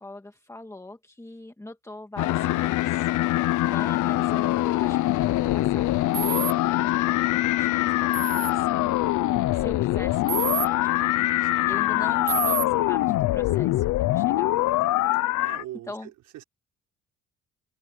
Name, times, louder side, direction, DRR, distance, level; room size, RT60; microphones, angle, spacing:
voice 1, 0.0-3.1 3.7-9.2 9.5-11.2 11.7-15.0 15.9-16.1, left 2 dB, 10° left, 1.9 m, -42 dB
sound 1, 2.2-15.6, left 16 dB, 80° left, 0.7 m, -23 dB
voice 2, 3.8-4.3 11.4-11.7 15.4-16.4, right 14 dB, 90° right, 5.3 m, -43 dB
sound 2, 6.1-6.5 8.1-8.5 10.3-10.7 12.3-12.6, right 13 dB, 65° right, 0.7 m, -28 dB
cardioid pair, 90°, 30 cm